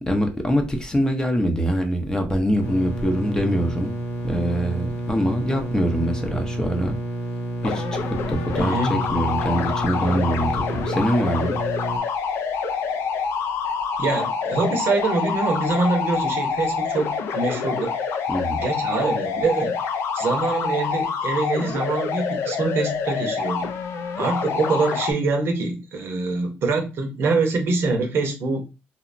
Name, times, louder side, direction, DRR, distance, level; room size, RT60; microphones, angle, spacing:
voice 1, 0.0-3.9 4.2-6.9 7.6-8.0 8.3-11.6 18.3-18.6, equal, 15° left, 0.5 m, -24 dB
sound 1, 2.6-12.0, right 1 dB, 60° left, 0.9 m, -30 dB
sound 2, 7.6-25.1, left 5 dB, 75° left, 0.4 m, -26 dB
voice 2, 8.6-9.0 14.0-17.9 18.5-19.8 20.1-23.7 24.2-28.6, right 3 dB, 60° right, 0.6 m, -24 dB
2.8 x 2.1 x 2.4 m
cardioid pair, 90°, 5 cm